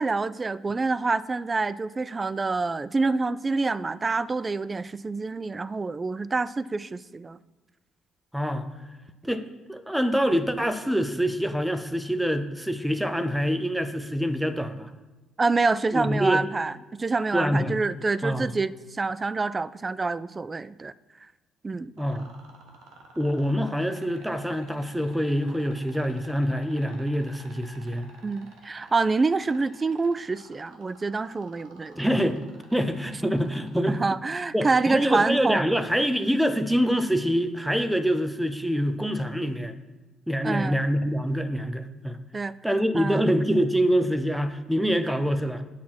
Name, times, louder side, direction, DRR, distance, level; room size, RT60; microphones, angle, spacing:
voice 1, 0.0-7.4 15.4-20.9 21.6-21.9 28.2-32.0 33.9-35.7 40.4-40.8 42.3-42.5 42.9-43.2, right 3 dB, 30° right, 17 dB, 0.3 m, -27 dB
voice 2, 8.3-8.7 9.2-9.4 9.7-14.9 15.9-16.4 17.3-17.7 18.2-18.5 22.0-22.3 23.2-28.1 32.0-32.4 32.7-34.0 34.5-39.8 40.3-42.2 42.6-45.6, equal, 5° right, 10 dB, 0.7 m, -25 dB
sound 1, 22.0-34.1 35.8-35.9, right 3 dB, 80° right, 1.4 m, -51 dB
8.4 x 5.8 x 4.4 m, 1.2 s
supercardioid pair, 70°, 0 cm